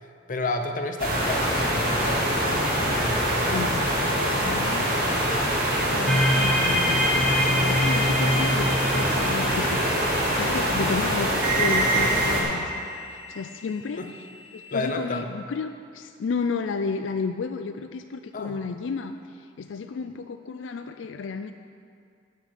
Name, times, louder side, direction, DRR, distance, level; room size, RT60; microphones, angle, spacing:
voice 1, 0.3-3.7 4.2-5.3 14.0-14.1 14.7-15.3 18.3-18.6, left 2 dB, 45° left, 5 dB, 0.8 m, -32 dB
sound 1, 1.0-12.4, equal, 50° right, 2.7 m, -24 dB
voice 2, 3.5-3.9 4.4-4.9 5.9-12.8 13.1-14.0 14.5-19.1 19.6-21.5, left 5 dB, 85° left, 8 dB, 0.4 m, -32 dB
sound 2, 6.1-10.9, left 1 dB, 5° left, 0.7 m, -26 dB
sound 3, 11.0-13.7 14.0-14.9, right 2 dB, 15° right, 2.4 m, -31 dB
7.5 x 7.3 x 8.1 m, 2.3 s
head